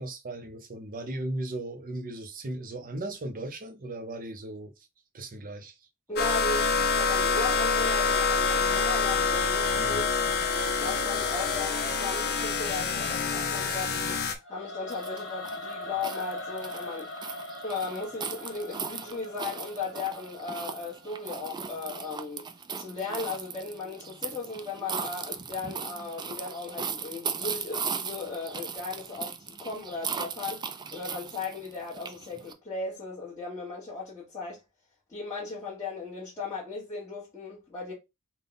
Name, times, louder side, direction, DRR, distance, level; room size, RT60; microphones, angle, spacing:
voice 1, 0.0-4.7 5.1-5.7 9.8-10.0, right 1 dB, 40° right, 0.7 m, -37 dB
voice 2, 6.1-10.0 10.8-14.2 14.5-17.1 17.6-22.4 22.8-30.6 30.9-34.6 35.1-37.9, left 4 dB, 15° left, 1.2 m, -36 dB
sound 1, 6.2-14.3, left 5 dB, 50° left, 0.7 m, -26 dB
Singing / Musical instrument, 14.4-21.5, left 1 dB, 70° left, 1.3 m, -41 dB
sound 2, 14.9-32.5, right 6 dB, 20° right, 0.3 m, -38 dB
3.5 x 2.2 x 3.9 m
head